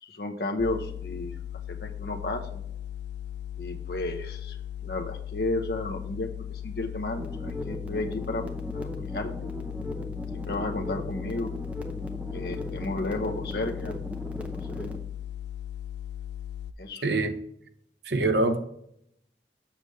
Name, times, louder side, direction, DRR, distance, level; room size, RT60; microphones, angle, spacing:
voice 1, 0.0-1.4 1.7-2.6 3.6-4.6 4.8-8.4 8.7-9.5 10.3-11.5 12.3-14.0 14.7-14.9 16.8-17.0, left 2 dB, 60° left, 4 dB, 0.9 m, -33 dB
sound 1, 0.6-16.7, left 10 dB, 80° left, 0.4 m, -38 dB
sound 2, 7.1-15.0, equal, 5° right, 0.7 m, -37 dB
voice 2, 17.0-17.3 18.0-18.6, right 2 dB, 75° right, 7 dB, 0.9 m, -24 dB
7.1 x 6.7 x 3.2 m, 0.73 s
head